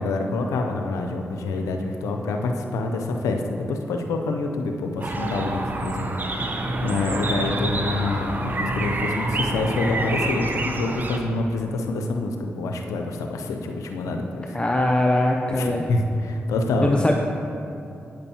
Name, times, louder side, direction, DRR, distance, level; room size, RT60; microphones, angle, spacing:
voice 1, 0.0-14.6 15.5-17.0, left 2 dB, 80° left, 3 dB, 0.5 m, -27 dB
sound 1, 5.0-11.2, right 2 dB, 35° right, 0.8 m, -27 dB
voice 2, 14.5-15.9 16.8-17.2, left 1 dB, 20° left, 2 dB, 0.5 m, -21 dB
8.9 x 6.8 x 2.9 m, 2.7 s
supercardioid pair, 40°, 5 cm